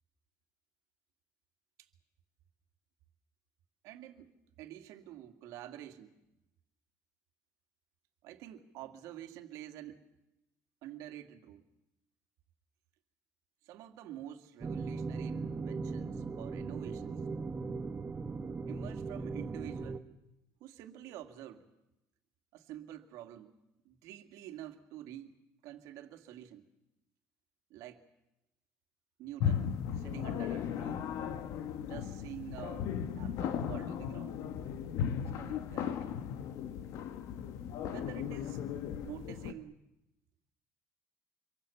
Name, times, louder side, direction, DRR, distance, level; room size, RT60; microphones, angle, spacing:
voice 1, 3.8-6.1 8.2-10.1 10.8-11.6 13.6-17.2 18.6-20.0 20.6-21.7 22.5-23.5 23.8-25.4 25.6-26.7 27.7-28.0 29.2-31.1 31.8-34.4 35.2-36.1 37.9-38.6 39.0-39.8, right 12 dB, 75° right, 7 dB, 2.3 m, -48 dB
sound 1, 14.6-20.0, right 4 dB, 20° right, 1.3 m, -38 dB
sound 2, 29.4-39.5, left 8 dB, 70° left, 1.5 m, -36 dB
26.5 x 23.5 x 7.1 m, 0.90 s
cardioid pair, 130°, 6 cm